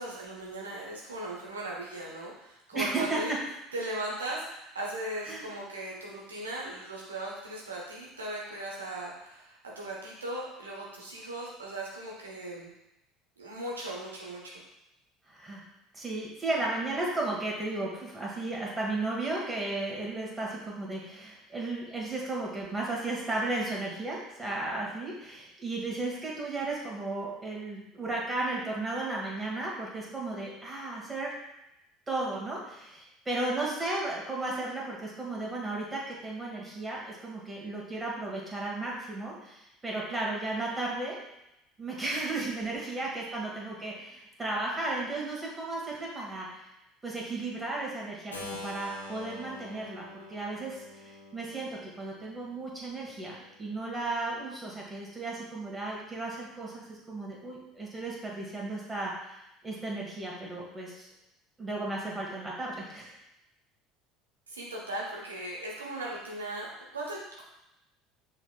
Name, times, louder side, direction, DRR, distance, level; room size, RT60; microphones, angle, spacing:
voice 1, 0.0-3.3 3.7-12.7 13.4-14.5 64.5-66.7 66.9-67.4, right 1 dB, 90° right, -3 dB, 1.0 m, -38 dB
voice 2, 2.7-3.2 5.3-5.5 15.3-15.6 15.9-31.3 32.1-41.2 41.8-46.6 47.0-51.7 52.0-61.1 61.6-63.1, right 2 dB, 20° right, -3 dB, 1.5 m, -34 dB
Keyboard (musical), 48.3-54.2, left 2 dB, 90° left, 0.6 m, -46 dB
5.9 x 3.3 x 2.3 m, 0.88 s
hypercardioid pair, 65°, 0 cm